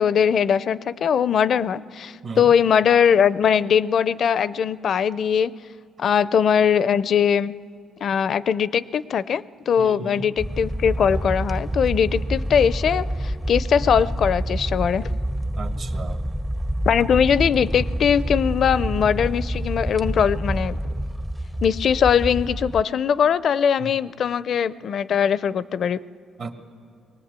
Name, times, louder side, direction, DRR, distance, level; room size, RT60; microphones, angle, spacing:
voice 1, 0.0-5.5 6.0-7.5 8.0-15.1 16.9-20.8 21.6-26.0, left 7 dB, 60° left, 18 dB, 0.4 m, -20 dB
voice 2, 9.8-10.3 15.6-16.2 23.8-23.9 26.4-26.5, right 4 dB, 60° right, 6 dB, 1.7 m, -34 dB
sound 1, 10.4-22.8, right 1 dB, 5° right, 0.5 m, -27 dB
21.5 x 18.0 x 8.2 m, 2.2 s
cardioid pair, 90°, 0 cm